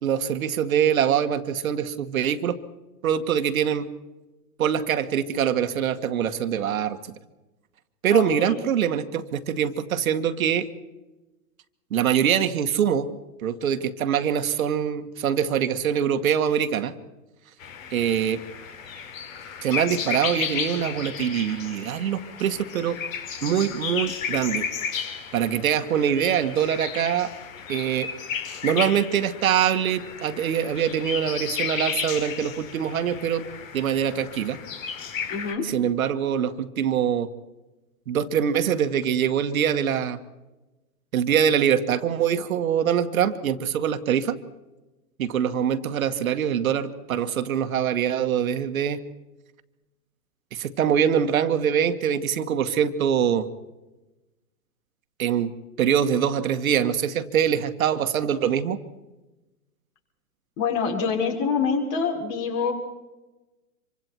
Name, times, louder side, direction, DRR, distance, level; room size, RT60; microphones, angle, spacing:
voice 1, 0.0-2.6 3.0-3.9 4.6-7.0 8.0-10.7 11.9-13.1 13.4-16.9 17.9-18.4 19.6-23.0 23.4-24.7 25.3-27.3 27.7-28.1 28.6-33.5 33.7-34.6 35.6-37.3 38.1-40.2 41.1-44.4 45.2-49.0 50.5-53.5 55.2-55.5 55.8-58.8, right 8 dB, 60° right, 8 dB, 1.8 m, -24 dB
voice 2, 8.1-8.6 35.3-35.6 60.6-62.7, left 5 dB, 35° left, 2 dB, 6.1 m, -26 dB
sound 1, 17.6-35.5, left 7 dB, 55° left, 4.2 m, -33 dB
27.0 x 24.5 x 4.6 m, 1.1 s
hypercardioid pair, 135°, 46 cm